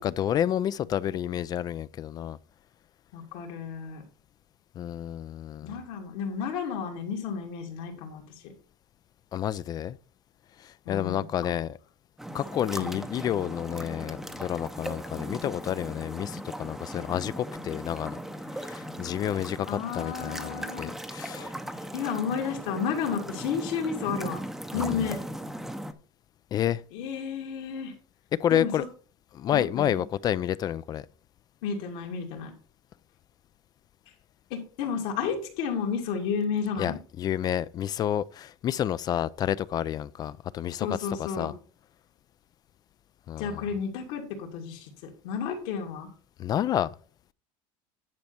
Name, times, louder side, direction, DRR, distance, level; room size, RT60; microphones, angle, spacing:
voice 1, 0.0-2.4 4.8-5.8 9.3-10.0 10.6-11.8 12.3-18.2 18.6-21.5 24.8-25.1 26.5-26.8 28.3-28.8 29.3-31.0 36.8-41.5 43.3-43.7 46.4-46.9, left 10 dB, 30° left, 0.3 m, -30 dB
voice 2, 3.1-4.0 5.6-8.2 10.9-11.5 12.8-13.0 19.7-20.9 21.3-21.5 21.9-24.4 24.7-25.2 26.9-27.9 28.5-28.7 29.5-30.0 31.6-32.5 34.5-37.0 40.8-41.5 43.4-44.9 45.2-46.1, left 6 dB, 75° left, 2.7 m, -32 dB
sound 1, 12.2-25.9, equal, 5° right, 0.6 m, -38 dB
10.5 x 5.3 x 4.4 m
cardioid pair, 140°, 12 cm